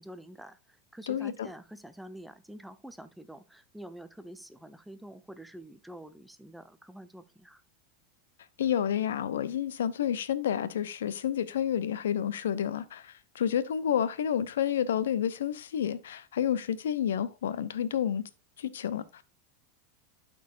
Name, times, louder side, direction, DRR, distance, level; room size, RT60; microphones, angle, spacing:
voice 1, 0.0-7.6, right 1 dB, ahead, 0.7 m, -47 dB
voice 2, 1.1-1.5 8.6-18.2 18.6-19.2, left 9 dB, 75° left, 0.6 m, -30 dB
12.5 x 4.6 x 2.4 m
hypercardioid pair, 85°, 0 cm